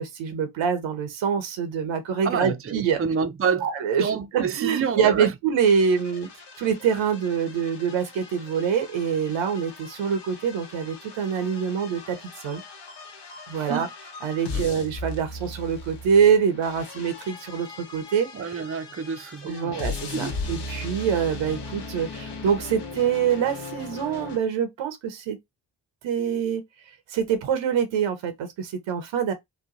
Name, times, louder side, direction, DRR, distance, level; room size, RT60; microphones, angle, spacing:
voice 1, 0.0-3.0 3.6-6.3 6.6-12.2 12.4-12.6 13.5-13.9 14.2-17.7 17.9-18.3 19.4-25.4 26.0-26.6 27.1-29.3, right 7 dB, 85° right, 0.9 m, -25 dB
voice 2, 2.2-3.7 4.0-5.3 13.6-13.9 14.5-14.7 18.3-19.8 20.1-20.3, right 6 dB, 30° right, 0.6 m, -28 dB
sound 1, 5.6-24.4, left 3 dB, 60° left, 1.0 m, -38 dB
3.0 x 2.3 x 3.7 m
supercardioid pair, 40°, 45 cm